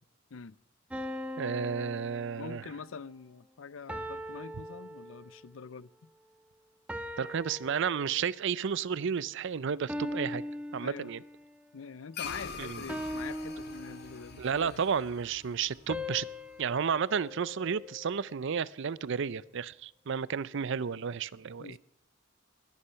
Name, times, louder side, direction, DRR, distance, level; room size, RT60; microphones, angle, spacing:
sound 1, 0.9-2.8 3.9-5.5 6.9-8.5 9.9-11.6 12.9-14.5 15.9-18.2, left 1 dB, 5° right, 1.0 m, -40 dB
voice 1, 1.4-2.7 7.2-10.4 10.7-11.2 12.6-12.8 14.4-16.3 16.6-21.8, right 6 dB, 65° right, 0.5 m, -32 dB
voice 2, 2.4-6.1 10.8-11.1 11.7-14.9 21.6-21.8, left 5 dB, 70° left, 0.5 m, -45 dB
sound 2, 12.1-16.8, left 5 dB, 55° left, 1.4 m, -45 dB
21.0 x 9.8 x 5.7 m
head